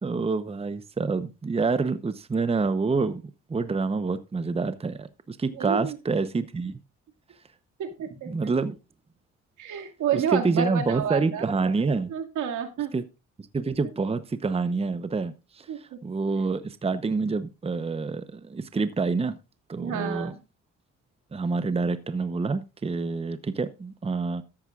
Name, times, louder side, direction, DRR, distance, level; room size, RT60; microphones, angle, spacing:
voice 1, 0.0-3.2 3.5-6.8 8.3-8.8 10.1-12.1 12.9-13.0 13.5-19.4 19.7-20.3 21.3-24.4, right 4 dB, 20° right, 0.8 m, -27 dB
voice 2, 5.5-5.9 7.8-8.5 9.6-11.4 11.8-12.9 15.7-16.0 19.8-20.4, right 8 dB, 80° right, 2.2 m, -30 dB
13.5 x 10.5 x 2.4 m
cardioid pair, 90°, 30 cm